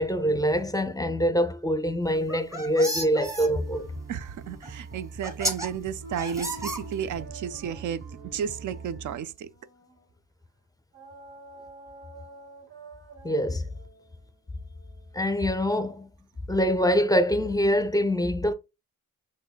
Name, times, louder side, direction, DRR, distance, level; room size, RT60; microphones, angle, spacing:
voice 1, 0.0-3.9 13.2-13.7 15.1-16.1 16.5-18.5, equal, 10° left, 0.6 m, -24 dB
sound 1, 2.2-3.5 4.6-4.7 5.2-5.7 6.2-7.2, right 1 dB, 10° right, 1.3 m, -32 dB
sound 2, 3.4-9.2, right 4 dB, 45° right, 1.3 m, -43 dB
voice 2, 4.1-9.5, right 8 dB, 70° right, 0.5 m, -33 dB
sound 3, 6.0-10.2 10.9-15.7, right 1 dB, 85° right, 1.4 m, -49 dB
6.0 x 3.1 x 2.3 m
cardioid pair, 75°, 32 cm